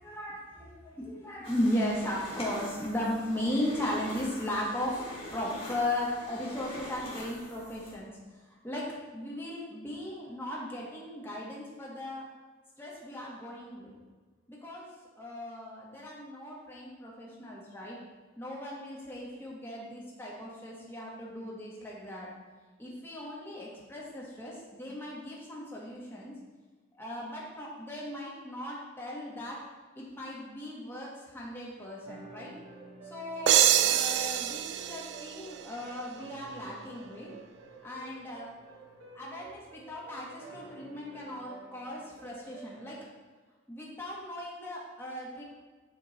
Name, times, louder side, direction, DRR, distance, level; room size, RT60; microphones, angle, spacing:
voice 1, 0.0-8.9 9.1-12.3 12.8-13.9 14.5-14.9 15.2-18.0 18.4-22.3 22.8-26.3 27.0-29.6 29.9-32.5 33.0-37.3 37.8-38.5 39.1-43.0 43.7-45.4, left 1 dB, 10° left, -5 dB, 1.5 m, -37 dB
sound 1, 1.4-7.9, left 1 dB, 30° left, 2.1 m, -44 dB
sound 2, 32.0-43.0, right 3 dB, 85° right, 1.2 m, -51 dB
sound 3, 33.5-36.1, right 11 dB, 55° right, 0.3 m, -26 dB
10.0 x 3.6 x 4.2 m, 1.4 s
head